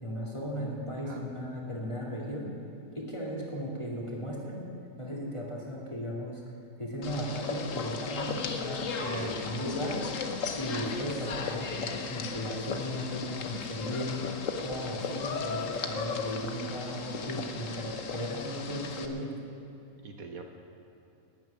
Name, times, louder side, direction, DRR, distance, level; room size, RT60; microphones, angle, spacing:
voice 1, 0.0-2.5 2.9-4.6 5.0-6.4 6.8-10.0 10.5-14.2 14.6-19.3, equal, 20° left, -3 dB, 2.6 m, -36 dB
sound 1, 7.0-19.1, left 5 dB, 60° left, 1.2 m, -36 dB
voice 2, 8.9-9.4 20.0-20.4, right 4 dB, 65° right, 4 dB, 1.4 m, -41 dB
12.0 x 9.5 x 9.8 m, 2.8 s
omnidirectional pair, 1.7 m